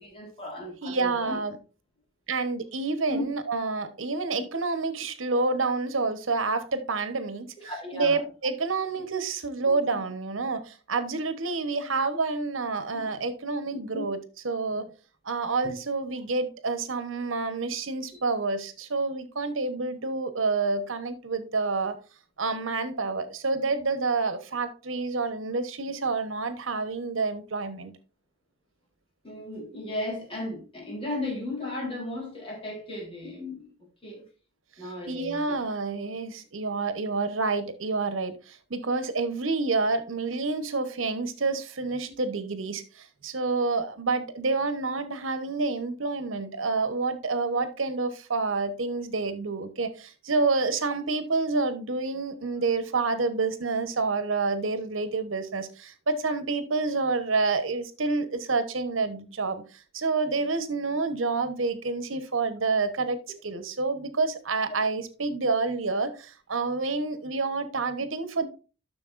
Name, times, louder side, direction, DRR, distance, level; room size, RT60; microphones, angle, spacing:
voice 1, 0.0-1.4 3.1-3.2 7.6-8.3 9.7-9.8 12.9-13.1 13.9-14.0 14.7-14.8 18.1-18.2 29.2-33.7 34.0-34.3 34.8-35.6 42.1-42.2 64.7-64.8, left 1 dB, 30° left, 3.6 m, -35 dB
voice 2, 0.8-1.6 2.3-14.2 14.4-14.9 15.2-22.0 22.4-27.9 35.1-59.6 59.9-68.5, right 3 dB, 75° right, 1.1 m, -28 dB
11.0 x 6.5 x 2.5 m
head